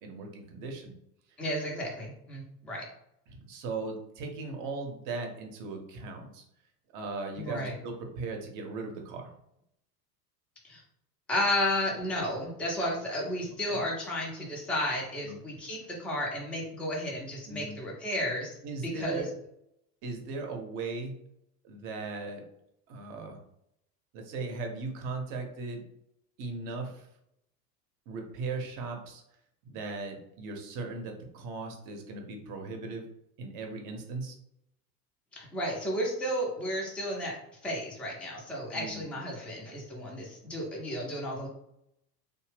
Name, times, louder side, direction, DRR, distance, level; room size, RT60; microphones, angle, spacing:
voice 1, 0.0-0.9 3.3-6.4 6.9-9.3 13.7-13.8 15.2-15.4 17.5-17.8 18.6-19.3 20.0-21.2 21.6-22.5 22.9-23.4 24.1-25.8 26.4-27.1 28.1-29.2 29.6-33.1 33.4-34.4 38.7-39.1, right 3 dB, 40° right, 3 dB, 0.8 m, -38 dB
voice 2, 1.4-2.9 7.4-7.7 10.6-10.8 11.3-19.3 35.3-37.4 37.6-41.5, left 1 dB, ahead, -3 dB, 0.5 m, -33 dB
2.7 x 2.2 x 3.2 m, 0.77 s
figure-of-eight pair, 75°, 49 cm